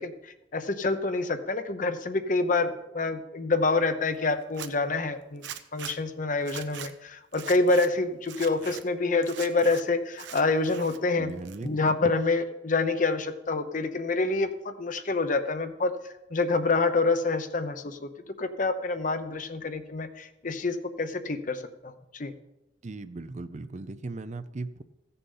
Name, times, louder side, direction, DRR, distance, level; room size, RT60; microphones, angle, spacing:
voice 1, 0.0-5.4 5.7-11.3 11.6-16.0 16.3-18.1 18.4-22.3, left 3 dB, 45° left, 9 dB, 0.8 m, -27 dB
Zipper (clothing), 4.4-4.7 5.4-5.9 6.4-6.9 7.3-7.9 8.2-8.8 9.2-9.8 10.1-11.0 11.3-11.9, right 9 dB, 90° right, 0.8 m, -41 dB
voice 2, 11.1-11.7 22.8-24.8, right 3 dB, 40° right, 12 dB, 0.5 m, -37 dB
15.0 x 6.9 x 5.5 m, 0.92 s
head